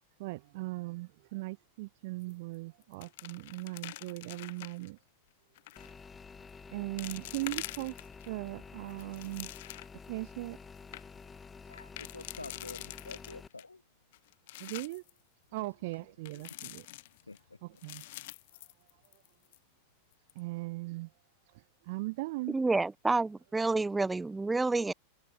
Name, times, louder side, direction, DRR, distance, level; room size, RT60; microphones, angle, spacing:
voice 1, 0.2-5.0 6.7-8.0 8.3-9.5 10.1-10.6 14.6-15.0 15.5-16.9 17.6-18.0 20.3-21.1 21.8-22.6, right 22 dB, 50° right, 2.9 m, -39 dB
sound 1, 2.2-2.6 2.8-4.9 5.6-5.9 6.5-6.6 7.0-8.3 8.8-10.1 10.5-10.6 10.8-11.0 11.7-13.6 14.1-15.1 16.3-17.4 17.8-19.3 19.5-19.6 20.1-20.4, left 18 dB, 50° left, 1.4 m, -45 dB
sound 2, 5.8-13.5, left 5 dB, 15° left, 6.9 m, -50 dB
voice 2, 11.7-13.8 15.5-15.7 17.3-17.4, left 3 dB, 80° left, 0.7 m, -47 dB
voice 3, 22.5-24.9, right 3 dB, 10° right, 0.8 m, -29 dB
figure-of-eight pair, 90°, 0 cm